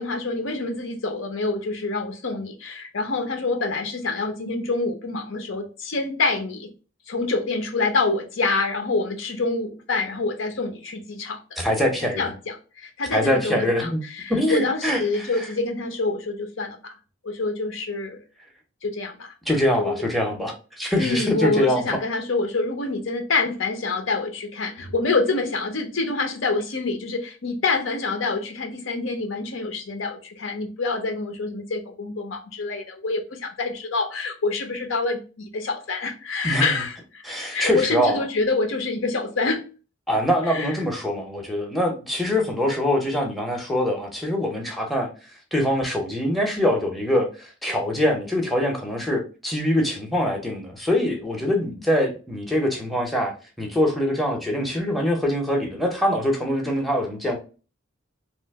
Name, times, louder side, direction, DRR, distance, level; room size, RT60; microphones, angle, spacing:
voice 1, 0.0-6.7 7.1-11.4 12.2-16.9 17.2-18.2 18.8-19.3 19.8-19.9 21.0-37.2 37.5-39.6 40.5-40.7, left 3 dB, 75° left, 0.7 m, -26 dB
voice 2, 11.6-12.3 13.1-14.0 14.3-15.5 19.5-21.9 36.4-36.8 37.2-38.2 40.1-45.1 45.5-57.4, left 1 dB, ahead, 0.6 m, -24 dB
2.9 x 2.5 x 3.4 m
head